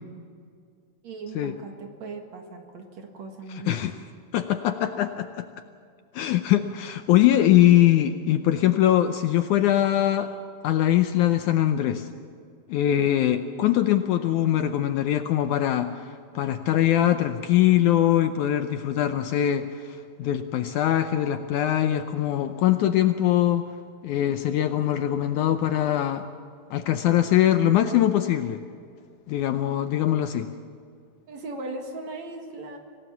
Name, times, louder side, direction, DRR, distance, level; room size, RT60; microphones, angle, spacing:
voice 1, 1.0-3.9 31.3-32.8, right 3 dB, 55° right, 3 dB, 2.8 m, -38 dB
voice 2, 3.5-3.9 4.3-5.5 6.1-10.3 10.6-12.1 12.7-23.6 24.0-26.3 26.7-28.6 29.3-30.5, left 12 dB, 75° left, 8 dB, 1.9 m, -22 dB
25.5 x 18.0 x 7.2 m, 2.3 s
omnidirectional pair, 4.0 m